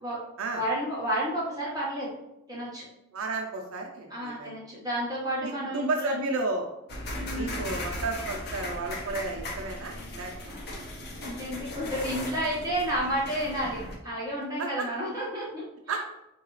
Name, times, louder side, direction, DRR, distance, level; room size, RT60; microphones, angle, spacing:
voice 1, 0.5-2.1 2.5-2.9 4.1-6.3 7.2-7.6 10.4-10.6 11.2-16.0, equal, 15° right, -6 dB, 0.9 m, -31 dB
voice 2, 3.1-4.6 5.4-6.7 7.3-10.4 14.6-14.9 15.9-16.0, right 3 dB, 70° right, 1 dB, 0.5 m, -32 dB
sound 1, 6.9-14.0, left 1 dB, 45° left, 0.6 m, -37 dB
4.6 x 2.3 x 3.0 m, 0.86 s
head